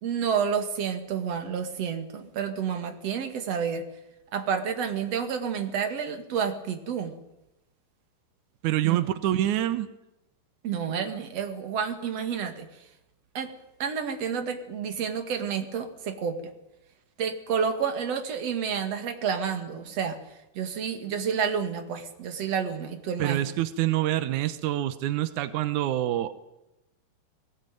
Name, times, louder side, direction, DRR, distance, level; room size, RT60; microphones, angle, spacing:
voice 1, 0.0-3.9 4.3-7.1 8.8-9.0 10.6-12.7 13.3-13.5 13.8-16.4 17.2-20.2 20.5-23.4, right 7 dB, 45° right, 7 dB, 2.6 m, -29 dB
voice 2, 8.6-9.9 23.2-26.4, right 13 dB, 85° right, 12 dB, 1.7 m, -26 dB
21.0 x 18.5 x 9.2 m, 0.93 s
omnidirectional pair, 4.8 m